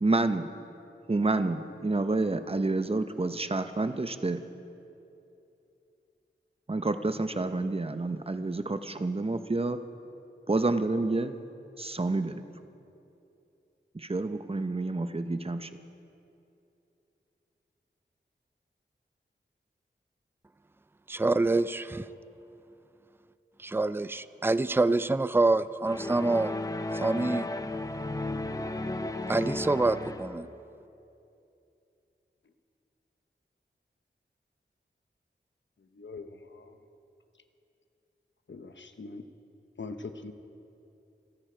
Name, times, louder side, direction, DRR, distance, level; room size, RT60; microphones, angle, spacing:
voice 1, 0.0-0.5 1.1-4.4 6.7-9.8 10.5-11.3 11.8-12.4 13.9-15.7, right 2 dB, 30° right, 10 dB, 0.8 m, -29 dB
voice 2, 21.1-22.1 23.6-26.5 26.9-27.5 29.3-30.5, right 2 dB, 10° right, 15 dB, 0.4 m, -26 dB
sound 1, 25.9-30.5, left 2 dB, 15° left, 0.7 m, -34 dB
voice 3, 36.0-36.7 38.5-39.2 39.8-40.3, left 3 dB, 70° left, 8 dB, 0.9 m, -42 dB
27.0 x 10.0 x 4.5 m, 2.8 s
wide cardioid pair, 55°, 20 cm